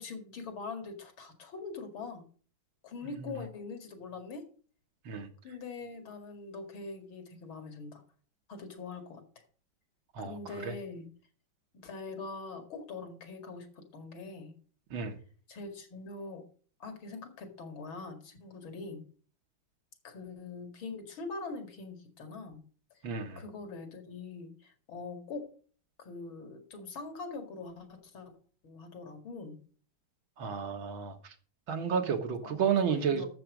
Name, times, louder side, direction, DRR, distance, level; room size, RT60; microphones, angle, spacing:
voice 1, 0.0-2.3 2.8-4.5 5.4-8.0 8.5-9.2 10.2-11.1 11.7-14.6 15.5-16.4 16.8-19.0 20.0-22.6 23.0-25.5 26.0-28.3 28.6-29.6 32.4-33.3, left 3 dB, 75° left, 2.9 m, -43 dB
voice 2, 10.1-10.7 14.9-15.2 23.0-23.4 30.4-31.3 31.7-33.2, right 7 dB, 75° right, 2.2 m, -32 dB
12.0 x 7.4 x 5.1 m
omnidirectional pair, 2.2 m